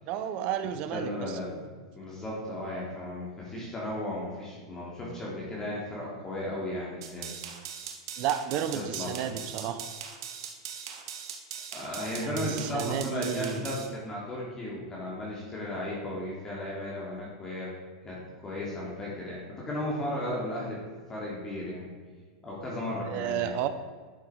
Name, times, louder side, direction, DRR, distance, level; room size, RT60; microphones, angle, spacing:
voice 1, 0.1-1.2 3.5-3.7 8.2-9.8 12.2-13.6 23.1-23.7, right 10 dB, 50° right, 10 dB, 0.8 m, -32 dB
voice 2, 0.9-1.6 1.9-7.3 8.7-9.3 11.7-17.7 18.0-20.8 21.1-21.9 22.4-23.5, left 1 dB, 20° left, -5 dB, 2.9 m, -35 dB
sound 1, 7.0-13.9, right 7 dB, 70° right, 1.5 m, -40 dB
11.0 x 6.8 x 4.8 m, 1.5 s
hypercardioid pair, 115°, 3 cm